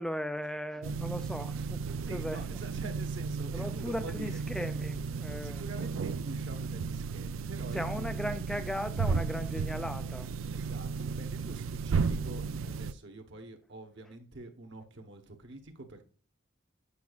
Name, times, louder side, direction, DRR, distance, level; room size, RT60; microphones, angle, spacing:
voice 1, 0.0-1.8 2.1-2.4 3.5-5.6 7.7-10.3, equal, 5° left, 0.4 m, -37 dB
sound 1, 0.8-12.9, right 5 dB, 80° right, 0.4 m, -34 dB
voice 2, 2.0-4.4 5.4-8.3 10.5-16.0, right 2 dB, 60° right, 1.1 m, -46 dB
8.3 x 5.9 x 2.4 m
head